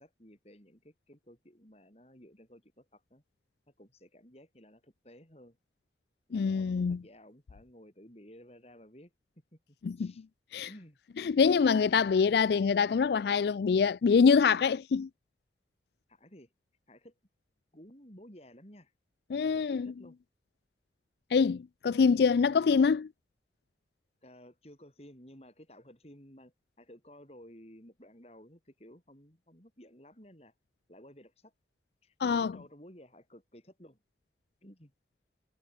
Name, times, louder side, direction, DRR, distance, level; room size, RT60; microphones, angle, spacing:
voice 1, 0.0-3.2 3.7-5.6 6.3-9.1 9.5-10.3 10.7-11.0 12.3-12.5 16.1-16.5 16.9-17.1 17.7-18.9 19.5-20.2 22.1-22.3 24.2-30.5 30.9-31.5 32.0-34.0 34.6-34.9, equal, 35° left, 7.9 m, -55 dB
voice 2, 6.3-7.0 9.8-10.1 10.5-10.7 11.2-15.1 19.3-19.9 21.3-23.1 32.2-32.5, left 5 dB, 65° left, 0.4 m, -25 dB
head